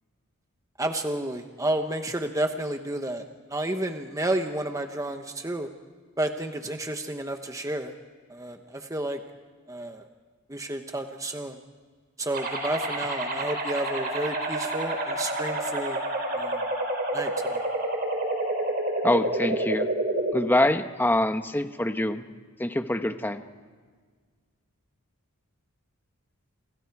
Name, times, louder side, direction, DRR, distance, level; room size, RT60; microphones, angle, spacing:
voice 1, 0.8-5.7 6.2-7.9 8.3-9.2 9.7-10.0 10.5-11.6 12.2-16.0 16.3-16.6 17.1-17.6, right 1 dB, 15° right, 5 dB, 1.1 m, -31 dB
sound 1, 12.3-20.3, right 1 dB, 40° right, 4.3 m, -29 dB
voice 2, 19.0-19.9 20.3-22.2 22.6-23.4, left 1 dB, 10° left, 8 dB, 1.0 m, -25 dB
29.5 x 27.0 x 4.8 m, 1.6 s
head